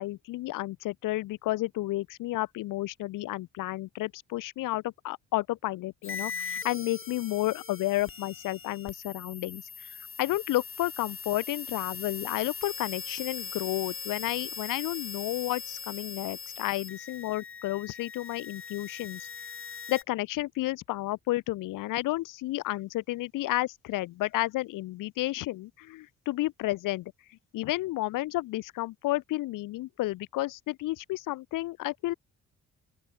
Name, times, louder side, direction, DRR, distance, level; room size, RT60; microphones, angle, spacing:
voice 1, 0.0-19.5 19.9-27.1 27.5-32.1, left 17 dB, 80° left, 0.6 m, -31 dB
sound 1, 6.0-20.0, left 6 dB, 40° left, 3.0 m, -40 dB
open air
cardioid pair, 70°, 31 cm